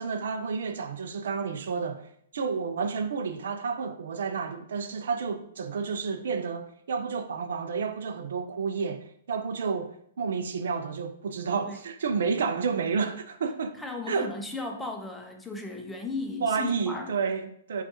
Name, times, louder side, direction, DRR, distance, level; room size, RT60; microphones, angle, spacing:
voice 1, 0.0-13.8 14.1-14.3 16.4-17.8, right 5 dB, 65° right, 0.4 m, -30 dB
voice 2, 13.8-17.1, left 3 dB, 5° left, 0.5 m, -36 dB
5.1 x 2.3 x 2.9 m
hypercardioid pair, 120°, 0 cm